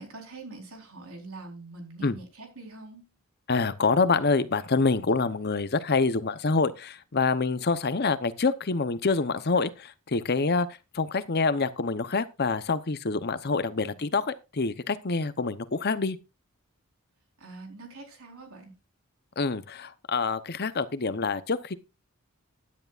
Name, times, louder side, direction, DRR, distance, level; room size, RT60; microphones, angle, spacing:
voice 1, 0.0-3.0 13.7-14.2 17.4-18.7, right 2 dB, 70° right, 4.3 m, -44 dB
voice 2, 3.5-10.7 10.9-16.2 19.4-21.7, left 4 dB, 45° left, 0.8 m, -26 dB
16.0 x 10.5 x 2.5 m
head